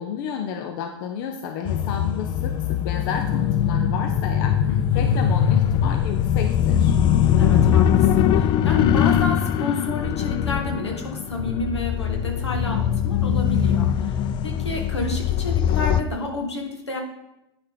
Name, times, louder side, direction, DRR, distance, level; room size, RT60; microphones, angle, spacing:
voice 1, 0.0-4.6 4.9-7.0, left 7 dB, 50° left, 5 dB, 0.8 m, -31 dB
sound 1, 1.7-16.0, left 9 dB, 35° left, 0.4 m, -21 dB
voice 2, 4.7-5.2 7.4-17.0, left 2 dB, 80° left, 2 dB, 1.8 m, -30 dB
9.4 x 6.5 x 3.7 m, 0.88 s
figure-of-eight pair, 85°, 14 cm